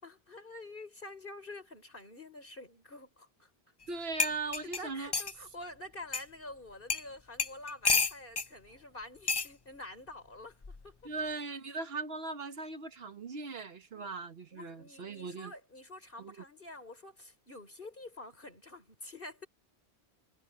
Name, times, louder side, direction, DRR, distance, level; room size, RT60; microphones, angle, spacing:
voice 1, 0.0-3.5 4.6-11.1 13.9-14.1 14.5-19.5, left 2 dB, 55° left, 5.2 m, -48 dB
sound 1, 3.8-3.9 4.2-5.4 6.1-6.2 6.9-7.1 7.4-8.5 9.3-9.5 10.6-10.9, left 4 dB, 30° left, 0.6 m, -30 dB
voice 2, 3.9-5.1 11.0-15.5 16.2-16.3, right 3 dB, 70° right, 1.4 m, -39 dB
omnidirectional pair, 1.1 m